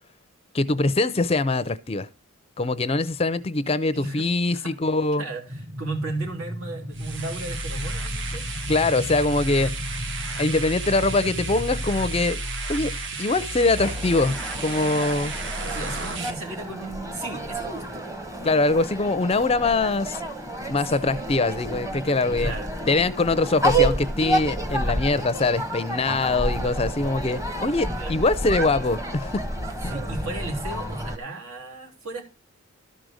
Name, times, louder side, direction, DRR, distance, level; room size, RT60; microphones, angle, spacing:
voice 1, 0.5-2.1 2.6-5.2 8.7-9.7 10.4-12.4 12.7-12.9 13.2-15.3 18.4-20.2 20.7-22.5 22.9-29.4, left 3 dB, 25° left, 0.5 m, -23 dB
voice 2, 3.9-4.3 4.5-4.7 5.2-8.5 15.6-18.0 22.2-22.7 23.4-23.5 28.0-28.3 29.9-32.2, right 2 dB, 75° right, 3.2 m, -35 dB
sound 1, 5.5-12.3, equal, 30° right, 0.8 m, -37 dB
sound 2, 6.9-16.3, right 2 dB, 55° right, 1.2 m, -32 dB
sound 3, 13.8-31.2, right 1 dB, 15° right, 1.1 m, -30 dB
13.0 x 5.1 x 6.2 m
head